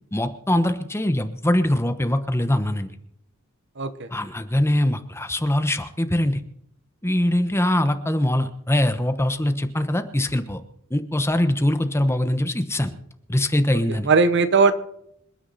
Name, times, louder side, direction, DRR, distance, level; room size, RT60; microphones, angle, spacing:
voice 1, 0.1-2.9 4.1-6.4 7.0-10.6 10.9-12.9 13.3-14.1, left 1 dB, 10° left, 9 dB, 1.1 m, -22 dB
voice 2, 3.8-4.1 13.7-14.7, right 4 dB, 55° right, 12 dB, 1.1 m, -19 dB
27.0 x 9.7 x 4.2 m, 0.74 s
head